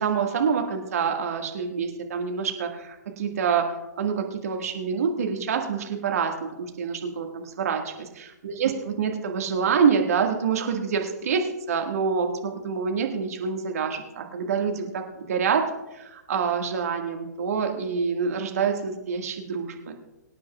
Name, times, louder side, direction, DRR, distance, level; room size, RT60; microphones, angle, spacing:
voice 1, 0.0-19.9, right 6 dB, 55° right, 3 dB, 1.9 m, -26 dB
24.5 x 9.8 x 2.4 m, 0.97 s
figure-of-eight pair, 120°, 10 cm